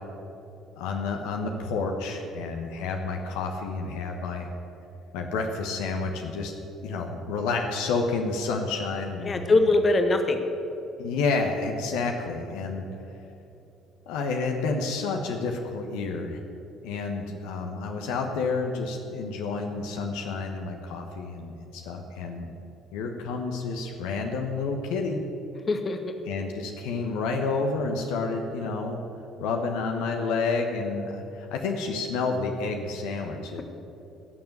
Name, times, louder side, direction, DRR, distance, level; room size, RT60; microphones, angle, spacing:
voice 1, 0.8-4.5 5.1-6.5 6.8-9.6 11.0-12.9 14.1-16.4 16.8-22.4 22.9-25.2 26.3-29.0 29.4-33.6, left 4 dB, 65° left, 3 dB, 1.2 m, -30 dB
voice 2, 9.2-10.4 25.7-26.1, left 2 dB, 35° left, 6 dB, 1.4 m, -22 dB
17.0 x 7.0 x 7.9 m, 2.8 s
figure-of-eight pair, 50°, 0 cm